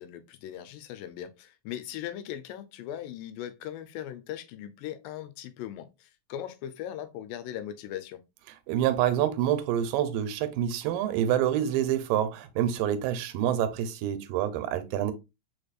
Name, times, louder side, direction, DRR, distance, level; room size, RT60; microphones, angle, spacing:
voice 1, 0.0-8.2, left 11 dB, 85° left, 2.3 m, -39 dB
voice 2, 8.7-15.1, right 10 dB, 85° right, 2.3 m, -27 dB
5.2 x 4.1 x 2.4 m
omnidirectional pair, 3.9 m